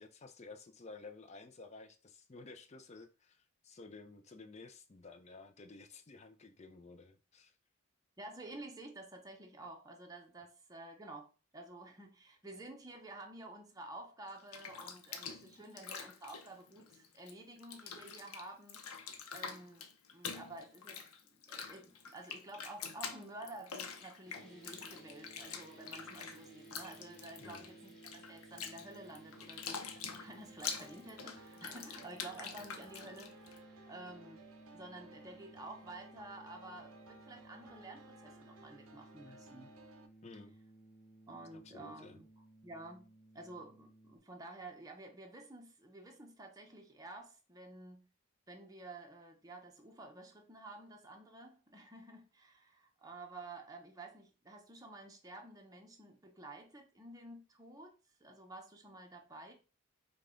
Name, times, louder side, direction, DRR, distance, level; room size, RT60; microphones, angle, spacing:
voice 1, 0.0-7.5 27.4-27.6 40.2-40.5 41.5-42.2, left 3 dB, 30° left, 0.5 m, -53 dB
voice 2, 8.2-21.0 21.3-34.4 34.7-39.7 41.3-42.3 42.6-43.1 43.3-48.0 48.5-57.9 58.2-59.5, right 2 dB, 15° right, 0.7 m, -51 dB
Bathtub (filling or washing), 14.3-17.3 17.6-33.6, left 6 dB, 80° left, 0.7 m, -46 dB
sound 1, 24.3-44.2, right 2 dB, ahead, 1.2 m, -58 dB
sound 2, 30.5-40.1, right 2 dB, 70° right, 0.6 m, -59 dB
5.3 x 2.3 x 3.7 m
head